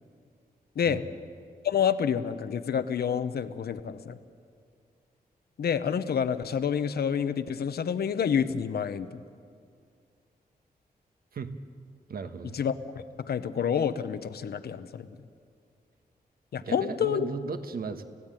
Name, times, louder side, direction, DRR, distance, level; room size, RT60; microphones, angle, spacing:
voice 1, 1.6-4.2 5.6-9.2 12.5-15.2 16.5-17.3, left 7 dB, 85° left, 11 dB, 1.0 m, -28 dB
voice 2, 12.1-12.6 16.6-18.0, right 5 dB, 70° right, 8 dB, 1.4 m, -36 dB
29.0 x 16.5 x 9.0 m, 2.3 s
wide cardioid pair, 130°, 16 cm